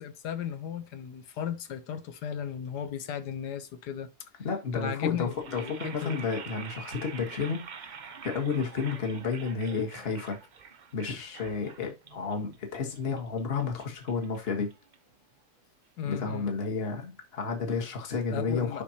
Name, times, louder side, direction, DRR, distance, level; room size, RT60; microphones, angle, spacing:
voice 1, 0.0-4.1 4.7-6.2 16.0-16.5 18.3-18.8, left 8 dB, 75° left, 1.5 m, -35 dB
voice 2, 4.4-8.0 8.2-10.4 10.9-14.7 16.0-18.8, left 5 dB, 35° left, 1.6 m, -31 dB
sound 1, 5.3-15.3, right 6 dB, 75° right, 0.4 m, -46 dB
11.0 x 4.3 x 2.9 m
omnidirectional pair, 1.8 m